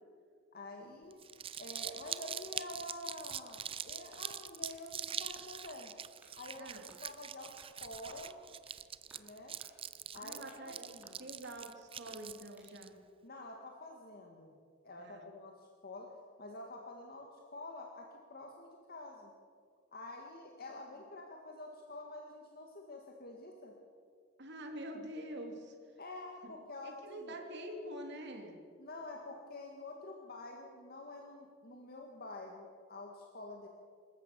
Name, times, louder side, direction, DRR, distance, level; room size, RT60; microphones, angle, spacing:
voice 1, 0.5-1.2 1.6-5.9 6.3-6.7 7.0-8.4 9.2-9.6 10.1-11.2 13.2-14.6 14.8-19.3 19.9-23.7 26.0-27.3 28.8-33.7, left 2 dB, 50° left, 1 dB, 2.0 m, -48 dB
Crumpling crinkling, 1.1-12.9, right 8 dB, 30° right, 0.5 m, -44 dB
sound 1, 4.1-4.9 5.3-5.8 6.2-6.4 6.9-7.1 7.6-7.7 8.1-8.8 9.1-9.3 9.6-9.8 10.1-10.7 11.0-11.6 12.0-12.7, right 1 dB, 10° right, 4.1 m, -63 dB
voice 2, 6.6-6.9 10.2-12.9 15.0-15.2 24.4-25.8 26.8-28.6, right 1 dB, 60° right, 3 dB, 3.2 m, -46 dB
26.0 x 14.0 x 7.0 m, 2.2 s
head